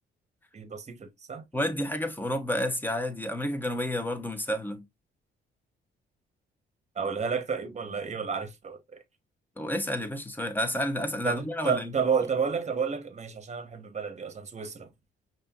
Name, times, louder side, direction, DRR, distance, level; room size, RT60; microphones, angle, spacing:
voice 1, 0.5-1.4 7.0-9.0 11.2-14.9, right 6 dB, 35° right, 1.0 m, -31 dB
voice 2, 1.5-4.8 9.6-11.9, left 1 dB, 10° left, 1.0 m, -30 dB
5.4 x 2.7 x 2.3 m
cardioid pair, 90°, 20 cm